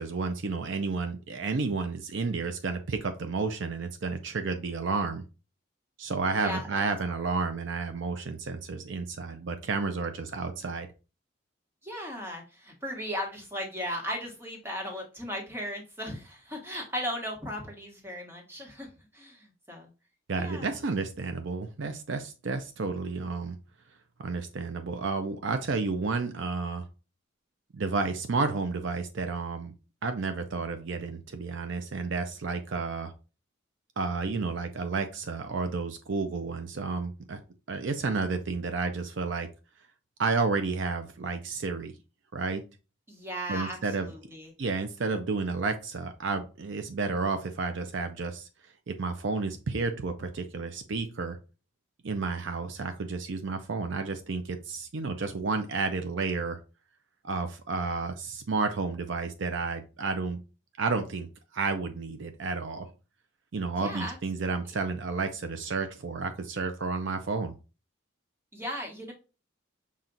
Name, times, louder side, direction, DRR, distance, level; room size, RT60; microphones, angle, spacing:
voice 1, 0.0-5.2 6.0-10.9 20.3-23.6 24.2-26.8 27.7-29.7 30.0-33.1 34.0-37.4 37.7-39.5 40.2-41.9 42.3-42.6 43.5-44.1 44.6-48.5 48.9-51.4 52.0-56.6 57.2-60.4 60.8-61.3 61.5-62.9 63.5-67.5, right 4 dB, 65° right, 7 dB, 0.5 m, -31 dB
voice 2, 6.3-6.8 7.1-7.2 11.8-18.9 19.1-19.9 20.3-20.8 43.1-43.8 44.0-44.5 63.7-64.2 68.5-69.1, equal, 10° right, 1 dB, 1.2 m, -36 dB
5.7 x 2.4 x 3.8 m, 0.32 s
head